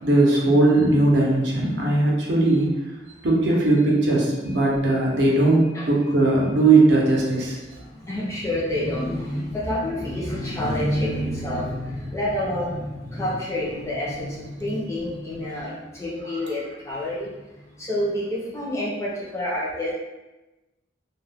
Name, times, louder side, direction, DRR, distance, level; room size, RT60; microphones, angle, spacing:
voice 1, 0.0-2.7 3.2-7.6, right 2 dB, 65° right, -3 dB, 0.6 m, -19 dB
voice 2, 7.9-17.3 17.8-19.9, left 1 dB, 15° left, -6 dB, 0.5 m, -28 dB
2.3 x 2.1 x 3.4 m, 1.1 s
head